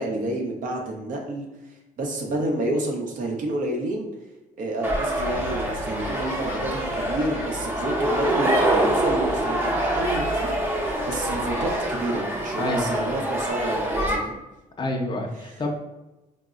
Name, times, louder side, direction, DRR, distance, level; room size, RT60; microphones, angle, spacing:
voice 1, 0.0-1.5 2.0-4.1 4.6-14.4 15.4-15.5, right 1 dB, 70° right, 1 dB, 0.7 m, -29 dB
sound 1, 4.8-14.2, right 1 dB, 15° right, 0.6 m, -25 dB
sound 2, 5.1-11.8, left 2 dB, 80° left, 0.4 m, -37 dB
voice 2, 12.6-13.1 14.8-15.8, left 2 dB, 35° left, 2 dB, 0.5 m, -28 dB
3.9 x 2.0 x 2.4 m, 1.0 s
cardioid pair, 90°, 14 cm